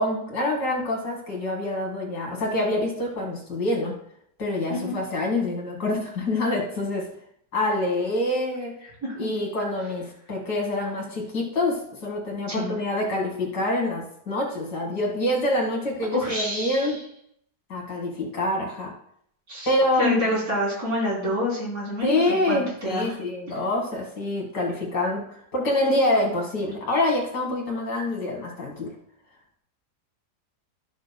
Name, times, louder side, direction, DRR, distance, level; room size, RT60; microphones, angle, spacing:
voice 1, 0.0-3.9 4.4-7.1 7.5-8.7 9.2-17.0 17.7-18.9 19.7-20.4 22.0-25.2 25.5-28.9, left 1 dB, 70° left, -1 dB, 2.7 m, -26 dB
voice 2, 16.1-16.9 19.5-19.7 20.0-23.1, equal, 55° right, -5 dB, 4.1 m, -27 dB
13.5 x 6.4 x 2.3 m, 0.69 s
omnidirectional pair, 1.8 m